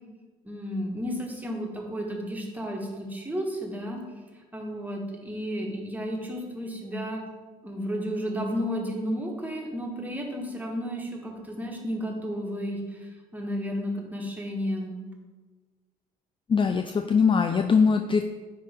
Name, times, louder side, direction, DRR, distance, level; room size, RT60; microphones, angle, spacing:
voice 1, 0.4-4.0 4.3-7.2 7.6-15.0, equal, 10° right, -1 dB, 1.7 m, -32 dB
voice 2, 16.5-18.2, left 5 dB, 25° left, 7 dB, 0.4 m, -21 dB
9.7 x 3.4 x 3.5 m, 1.3 s
hypercardioid pair, 55°, 20 cm